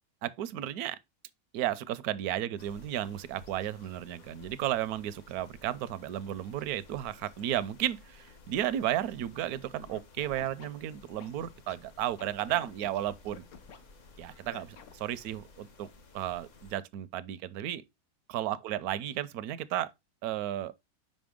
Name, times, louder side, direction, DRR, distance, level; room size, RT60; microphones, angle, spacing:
voice 1, 0.2-1.0 1.5-13.4 14.2-15.9 16.1-17.8 18.3-19.9 20.2-20.7, right 12 dB, 80° right, 1.0 m, -33 dB
sound 1, 2.6-16.8, left 3 dB, 55° left, 1.3 m, -56 dB
Scratching (performance technique), 9.8-11.8 12.2-13.8 14.5-15.1, left 7 dB, 70° left, 1.3 m, -50 dB
5.3 x 5.2 x 3.6 m
omnidirectional pair, 1.6 m